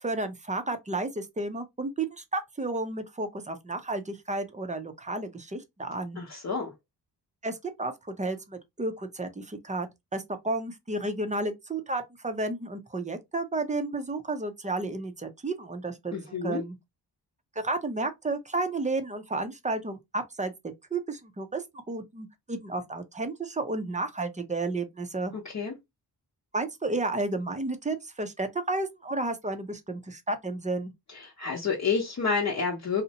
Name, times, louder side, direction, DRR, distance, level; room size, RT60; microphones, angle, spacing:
voice 1, 0.0-6.2 7.4-16.8 17.6-25.3 26.5-30.9, right 2 dB, 20° right, 0.5 m, -32 dB
voice 2, 6.2-6.7 16.1-16.6 25.4-25.7 31.1-33.0, left 5 dB, 45° left, 0.8 m, -29 dB
2.6 x 2.1 x 2.7 m
cardioid pair, 75°, 40 cm